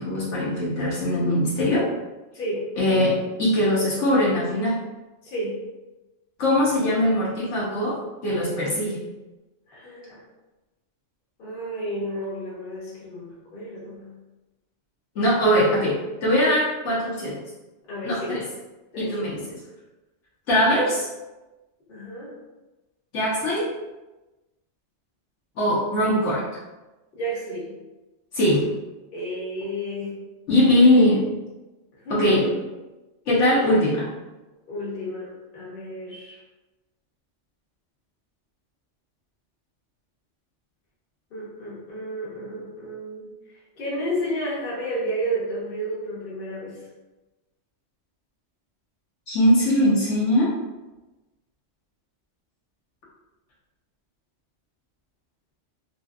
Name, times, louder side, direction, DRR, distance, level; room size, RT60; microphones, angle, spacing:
voice 1, 0.0-1.9 2.8-4.8 6.4-8.0 8.2-9.0 15.2-17.4 18.0-18.4 19.0-19.6 20.5-21.1 23.1-23.7 25.6-26.4 28.3-28.7 30.5-31.3 32.1-32.5 33.3-34.1 49.3-50.5, left 1 dB, 75° left, -7 dB, 1.1 m, -21 dB
voice 2, 2.3-2.7 5.2-5.6 9.7-10.2 11.4-14.1 17.9-18.4 18.9-19.2 21.9-22.3 27.1-27.7 29.1-30.1 32.0-32.6 34.7-36.4 41.3-43.3 43.8-46.8, equal, 50° left, -6 dB, 1.1 m, -31 dB
2.9 x 2.7 x 2.3 m, 1.1 s
omnidirectional pair, 1.3 m